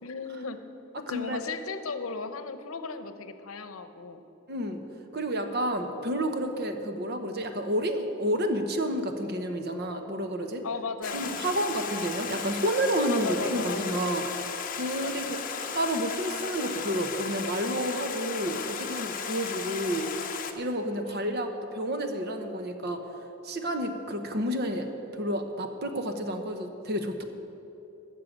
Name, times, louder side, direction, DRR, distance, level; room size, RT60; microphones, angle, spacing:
voice 1, 0.0-0.6 1.1-4.2 10.6-11.5 13.1-13.8 15.0-15.3 21.0-21.5, left 4 dB, 85° left, 10 dB, 0.8 m, -36 dB
voice 2, 1.1-1.4 4.5-4.8 5.1-10.6 11.1-14.5 14.8-15.4 15.7-20.1 20.6-23.0 23.4-24.9 25.1-27.2, equal, 50° right, 6 dB, 1.0 m, -30 dB
Stream, 11.0-20.5, left 6 dB, 40° left, 0.8 m, -35 dB
13.0 x 6.7 x 8.7 m, 2.9 s
head